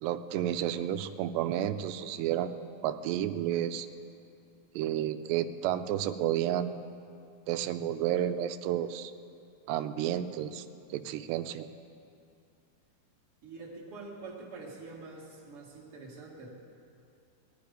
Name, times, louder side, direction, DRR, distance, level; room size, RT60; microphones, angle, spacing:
voice 1, 0.0-3.9 4.8-6.8 7.5-9.1 9.7-10.7 10.9-11.7, right 11 dB, 90° right, 10 dB, 2.8 m, -31 dB
voice 2, 13.4-16.5, right 3 dB, 45° right, -4 dB, 2.2 m, -45 dB
19.5 x 12.0 x 5.1 m, 2.5 s
omnidirectional pair, 4.8 m